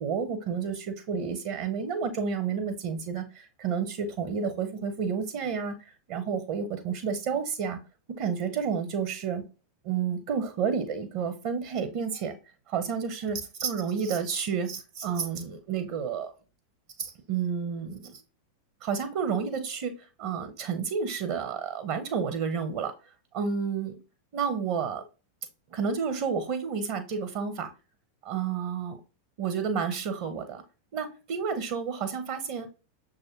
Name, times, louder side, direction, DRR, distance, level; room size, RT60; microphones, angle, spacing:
voice 1, 0.0-7.8 8.2-9.4 9.8-12.4 12.7-16.3 17.0-18.2 18.8-24.0 24.3-25.0 25.7-27.7 28.2-29.0 29.4-30.6 30.9-32.7, right 6 dB, 45° right, 10 dB, 0.6 m, -30 dB
6.3 x 2.4 x 2.9 m, 0.32 s
figure-of-eight pair, 90°, 0 cm